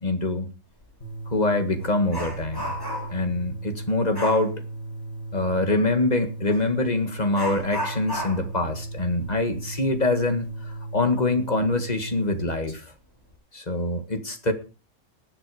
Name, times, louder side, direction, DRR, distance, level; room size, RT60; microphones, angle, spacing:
voice 1, 0.0-0.5 1.3-2.6 3.1-4.6 5.3-12.8 13.5-14.5, left 2 dB, 35° left, 8 dB, 2.0 m, -25 dB
Dog, 0.8-0.9 1.3-3.3 4.1-4.5 6.5-6.6 7.3-10.6 10.9-11.0 11.6-11.7 12.3-12.7 13.1-13.3, equal, 15° left, 5.5 m, -34 dB
sound 1, 1.0-12.4, right 2 dB, 55° left, 2.9 m, -36 dB
20.0 x 8.0 x 4.9 m, 0.32 s
omnidirectional pair, 1.3 m